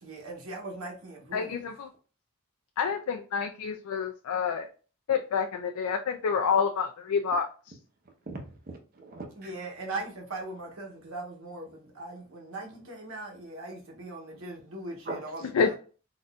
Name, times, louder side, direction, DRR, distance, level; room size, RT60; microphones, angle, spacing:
voice 1, 0.0-1.7 9.4-15.7, right 2 dB, 70° right, 1.0 m, -40 dB
voice 2, 1.3-1.9 2.8-4.7 5.1-7.5 15.6-15.7, left 6 dB, 85° left, 0.4 m, -28 dB
voice 3, 8.0-9.8 15.0-15.5, right 2 dB, 40° right, 0.7 m, -42 dB
4.0 x 2.5 x 2.2 m
head